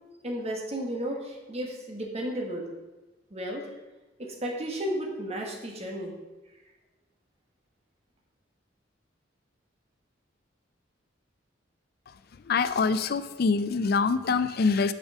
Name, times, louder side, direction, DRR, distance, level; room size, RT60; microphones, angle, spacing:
voice 1, 0.2-2.7 3.3-3.7 4.2-6.1, right 1 dB, 35° right, 0 dB, 1.4 m, -33 dB
voice 2, 12.1-14.9, left 4 dB, 55° left, 13 dB, 0.4 m, -25 dB
6.3 x 5.2 x 6.2 m, 1.1 s
head